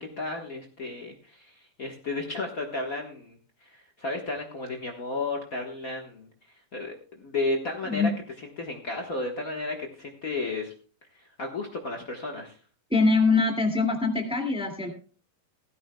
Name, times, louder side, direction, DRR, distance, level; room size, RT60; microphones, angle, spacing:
voice 1, 0.2-6.3 6.7-8.1 8.6-10.7 11.1-12.6, left 2 dB, 80° left, 1 dB, 0.7 m, -33 dB
voice 2, 12.9-14.9, left 3 dB, ahead, 3 dB, 1.3 m, -23 dB
17.0 x 14.5 x 2.3 m, 0.37 s
omnidirectional pair, 4.0 m